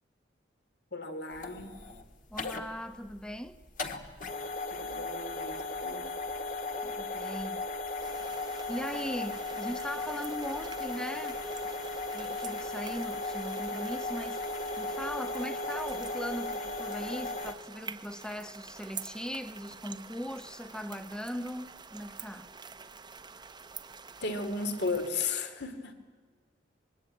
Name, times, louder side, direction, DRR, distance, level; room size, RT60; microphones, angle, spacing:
voice 1, 0.9-1.7 4.7-6.1 24.2-25.9, left 3 dB, 60° left, 2.5 m, -35 dB
sound 1, 1.3-17.5, left 2 dB, 45° left, 1.7 m, -36 dB
voice 2, 2.3-3.6 6.8-7.6 8.0-8.1 8.7-11.4 12.1-14.4 14.8-22.5, equal, 5° left, 0.9 m, -39 dB
sound 2, 8.0-25.1, right 5 dB, 25° right, 0.9 m, -48 dB
25.0 x 21.5 x 9.2 m
head